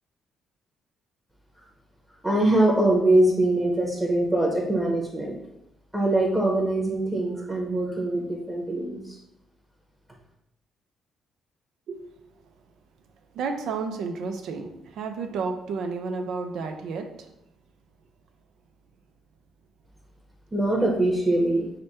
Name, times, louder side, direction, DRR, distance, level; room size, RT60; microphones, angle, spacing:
voice 1, 2.2-5.4 5.9-9.2 20.5-21.6, right 1 dB, 10° right, -3 dB, 1.0 m, -23 dB
voice 2, 13.3-17.1, right 4 dB, 80° right, 6 dB, 0.5 m, -31 dB
5.0 x 2.2 x 4.2 m, 0.84 s
cardioid pair, 90°, 0 cm